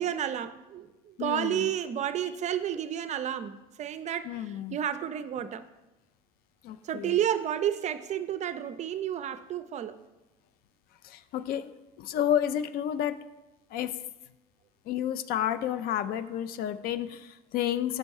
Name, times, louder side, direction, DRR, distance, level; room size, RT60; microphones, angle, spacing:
voice 1, 0.0-5.6 6.8-10.0, right 10 dB, 40° right, 0.4 m, -31 dB
voice 2, 1.2-1.7 4.2-4.8 6.6-7.2 11.0-11.7 12.0-13.2 13.7-13.9 14.9-18.0, left 10 dB, 55° left, 0.4 m, -30 dB
6.2 x 4.3 x 4.7 m
hypercardioid pair, 80°, 19 cm